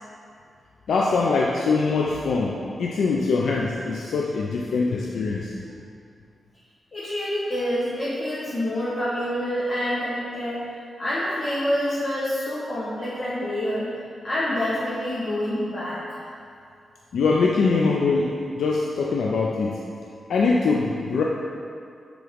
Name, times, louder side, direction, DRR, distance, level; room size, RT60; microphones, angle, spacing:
voice 1, 0.9-5.6 17.1-19.8 20.3-21.2, left 4 dB, 85° left, -2 dB, 0.5 m, -23 dB
voice 2, 6.9-10.6 11.0-13.9 14.2-16.2, left 1 dB, 45° left, -9 dB, 1.2 m, -27 dB
6.9 x 3.7 x 5.1 m, 2.4 s
cardioid pair, 100°, 0 cm